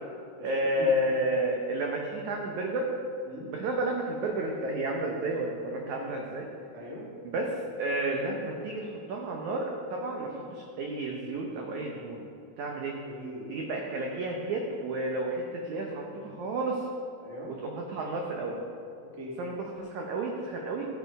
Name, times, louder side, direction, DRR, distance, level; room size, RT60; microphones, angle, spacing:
voice 1, 0.4-2.9 3.5-6.5 7.2-12.2 12.6-12.9 13.5-16.8 17.6-18.6 19.4-20.9, right 1 dB, 90° right, 0 dB, 1.6 m, -31 dB
voice 2, 6.7-7.0 10.3-10.5 13.0-13.5 17.2-17.5 19.1-19.3, equal, 30° right, -4 dB, 1.3 m, -42 dB
13.5 x 6.8 x 5.4 m, 2.5 s
omnidirectional pair, 4.7 m